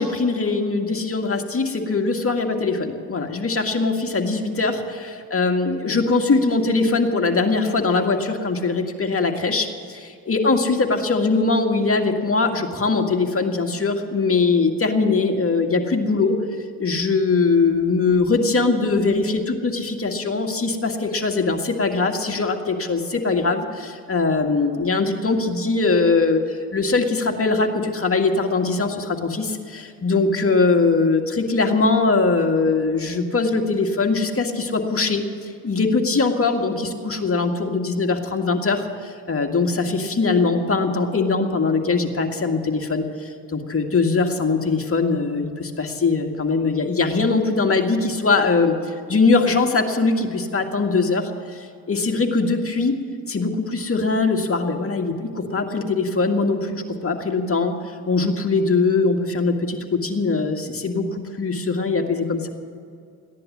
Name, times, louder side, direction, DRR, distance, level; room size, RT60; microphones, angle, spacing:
voice 1, 0.0-16.3 16.8-53.0 53.3-62.5, left 3 dB, 35° left, 3 dB, 2.0 m, -21 dB
15.5 x 10.5 x 7.4 m, 2.4 s
supercardioid pair, 60°, 41 cm